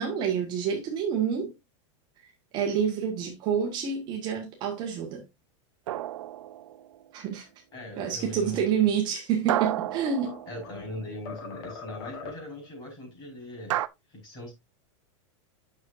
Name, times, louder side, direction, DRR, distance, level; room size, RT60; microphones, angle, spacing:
voice 1, 0.0-1.5 2.5-5.2 7.1-7.5 7.9-10.4, right 7 dB, 30° right, 1.6 m, -28 dB
sound 1, 5.9-7.1 9.5-11.2 13.7-13.9, right 14 dB, 75° right, 0.6 m, -32 dB
voice 2, 7.7-8.9 10.5-13.8 14.1-14.5, left 1 dB, 25° left, 4.8 m, -40 dB
sound 2, 9.6-10.9 11.3-12.7, left 5 dB, 45° left, 1.7 m, -43 dB
9.5 x 6.5 x 2.6 m
supercardioid pair, 175°, 16 cm